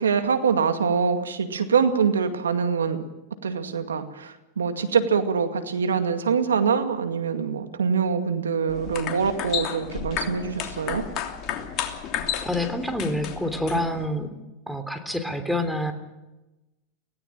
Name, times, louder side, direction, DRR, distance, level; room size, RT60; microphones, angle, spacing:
voice 1, 0.0-3.0 3.4-11.0, right 6 dB, 90° right, 7 dB, 2.2 m, -24 dB
sound 1, 8.7-14.1, left 9 dB, 45° left, 3.1 m, -32 dB
voice 2, 12.4-14.3 14.7-15.9, left 1 dB, ahead, 7 dB, 3.3 m, -27 dB
23.5 x 17.5 x 7.5 m, 1.0 s
hypercardioid pair, 100°, 0 cm